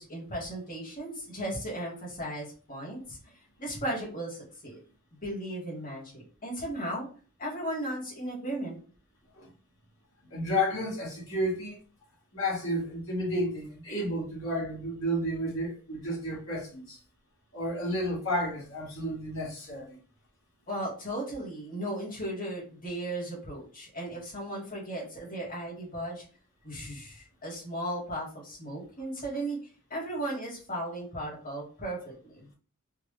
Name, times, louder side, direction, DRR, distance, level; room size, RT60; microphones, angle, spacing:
voice 1, 0.0-3.3 3.6-4.8 5.2-7.1 7.4-8.8 20.7-26.2 26.6-32.5, right 1 dB, 40° left, 1.9 m, -36 dB
voice 2, 10.3-11.8 12.3-17.0 17.5-20.0, equal, 65° left, 1.9 m, -31 dB
4.5 x 2.4 x 3.3 m
head